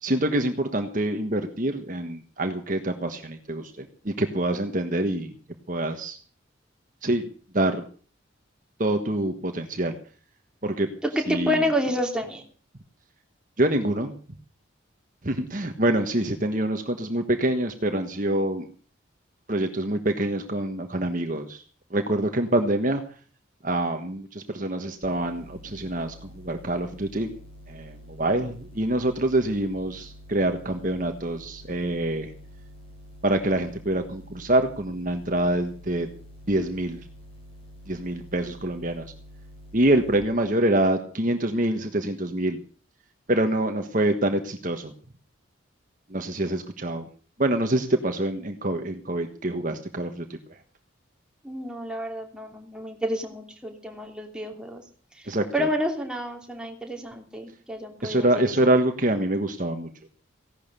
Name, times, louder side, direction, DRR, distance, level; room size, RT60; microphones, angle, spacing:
voice 1, 0.0-5.3 5.7-6.2 7.0-7.3 7.5-7.8 8.8-9.9 10.6-10.9 11.3-11.6 13.6-14.1 15.2-18.7 19.5-21.6 21.9-23.0 23.6-27.3 27.7-32.3 33.2-36.1 36.5-37.0 37.9-39.1 39.7-42.6 43.3-44.9 46.1-47.1 47.4-50.4 55.3-55.7 58.0-59.9, right 1 dB, 40° right, 6 dB, 1.5 m, -25 dB
voice 2, 11.1-12.4 51.4-54.8 55.5-58.5, equal, 5° right, 1 dB, 2.9 m, -29 dB
sound 1, 25.0-40.2, equal, 30° left, 4.8 m, -47 dB
16.5 x 11.5 x 6.8 m, 0.42 s
head